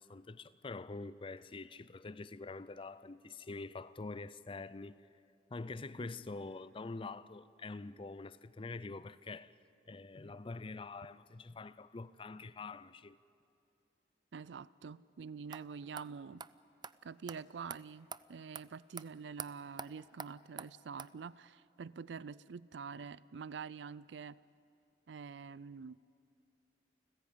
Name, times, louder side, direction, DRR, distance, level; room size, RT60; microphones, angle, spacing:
voice 1, 0.0-5.0 5.5-9.6 9.9-13.2, left 3 dB, 30° left, 0.5 m, -45 dB
voice 2, 14.3-16.4 17.0-24.4 25.1-26.0, right 5 dB, 85° right, 0.4 m, -46 dB
sound 1, 15.5-15.6 16.0-16.1 16.4-16.5 16.8-16.9 17.3-17.4 17.7-17.8 18.1-18.2 18.5-18.6 19.0-19.1 19.4-19.5 19.8-19.9 20.2-20.3 20.6-20.7 21.0-21.1, right 6 dB, 25° right, 0.4 m, -44 dB
29.0 x 15.5 x 8.5 m
head